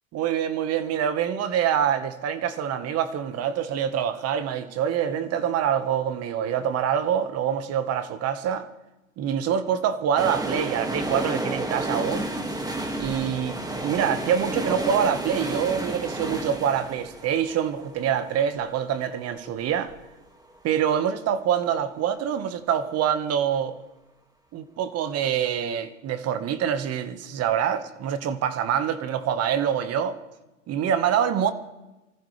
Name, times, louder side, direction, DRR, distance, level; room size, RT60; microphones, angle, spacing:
voice 1, 0.1-8.7 9.2-12.3 13.0-13.6 13.8-19.9 20.6-23.7 24.5-30.2 30.7-31.5, right 9 dB, 40° right, 1.5 m, -25 dB
sound 1, 10.2-20.0 20.3-20.4, right 1 dB, 10° right, 2.0 m, -31 dB
24.5 x 14.5 x 3.4 m
hypercardioid pair, 100°, 39 cm